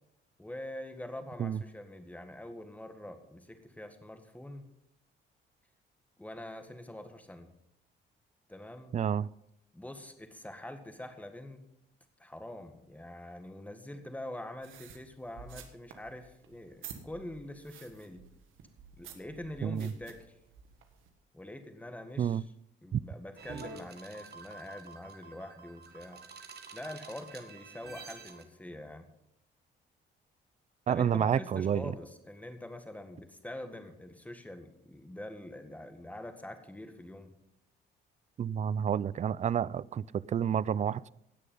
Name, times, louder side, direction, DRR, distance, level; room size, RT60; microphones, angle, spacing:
voice 1, 0.4-4.6 6.2-7.5 8.5-9.0 9.7-11.6 12.2-18.2 19.0-20.4 21.3-22.5 22.8-26.2 26.7-29.1 30.9-37.3, left 1 dB, 5° left, 1.7 m, -44 dB
voice 2, 8.9-9.3 19.6-19.9 22.2-22.4 22.9-23.0 30.9-31.9 38.4-41.1, right 8 dB, 35° right, 0.4 m, -29 dB
sound 1, 14.6-21.1, right 7 dB, 90° right, 1.6 m, -52 dB
sound 2, 23.4-28.4, right 5 dB, 55° right, 1.6 m, -48 dB
18.0 x 6.6 x 5.5 m
cardioid pair, 90°, 20 cm